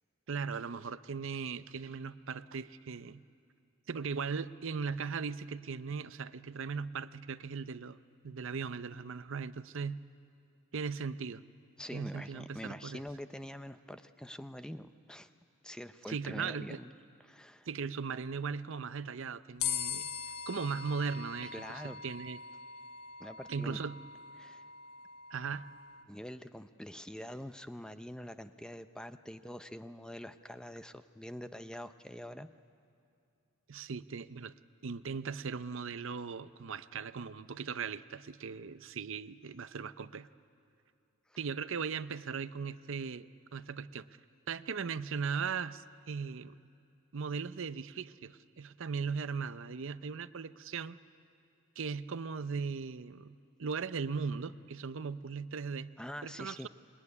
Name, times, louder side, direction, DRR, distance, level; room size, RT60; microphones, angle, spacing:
voice 1, 0.3-3.2 3.9-8.0 8.2-10.1 10.7-11.4 11.9-13.0 16.1-16.8 17.7-20.1 20.5-22.4 23.5-24.0 25.3-25.7 33.7-34.5 34.8-40.3 41.4-44.1 44.5-46.6 47.1-51.0 51.8-55.9 56.2-56.7, right 5 dB, 60° right, 14 dB, 0.6 m, -38 dB
voice 2, 11.8-15.3 15.6-16.9 17.2-17.7 21.4-22.0 23.2-23.8 24.4-24.6 26.1-32.5 41.3-41.4 56.0-56.7, equal, 5° left, 10 dB, 0.6 m, -45 dB
sound 1, 19.6-26.0, left 7 dB, 90° left, 0.9 m, -41 dB
26.0 x 21.5 x 9.7 m, 2.5 s
head